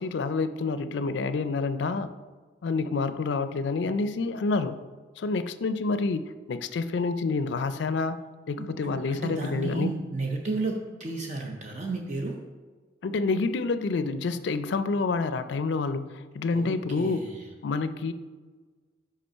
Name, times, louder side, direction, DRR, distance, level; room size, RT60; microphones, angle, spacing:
voice 1, 0.0-2.1 2.6-4.8 5.2-8.2 8.5-9.9 13.0-17.2 17.6-18.1, left 4 dB, 70° left, 12 dB, 0.4 m, -28 dB
voice 2, 8.6-12.4 16.5-17.5, right 3 dB, 40° right, 1 dB, 0.6 m, -33 dB
5.3 x 5.0 x 5.6 m, 1.4 s
head